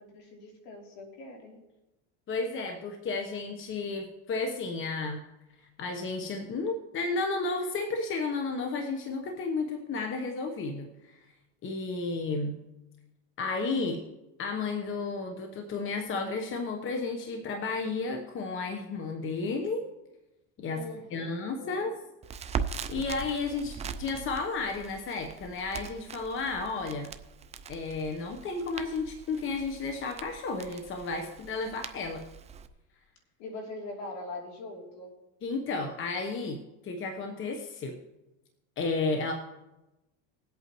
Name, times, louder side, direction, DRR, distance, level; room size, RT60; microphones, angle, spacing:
voice 1, 0.0-1.6 20.8-21.9 33.4-35.1, left 2 dB, 65° left, 0 dB, 3.4 m, -42 dB
voice 2, 2.3-5.2 5.8-11.2 11.6-12.6 13.4-14.0 14.4-19.8 20.6-20.8 21.1-21.9 22.9-27.1 27.7-32.2 35.4-38.0 38.8-39.3, left 3 dB, 30° left, 4 dB, 1.1 m, -32 dB
Crackle, 22.2-32.7, right 6 dB, 20° right, 0.4 m, -41 dB
20.5 x 8.3 x 3.1 m, 1.0 s
supercardioid pair, 125°, 38 cm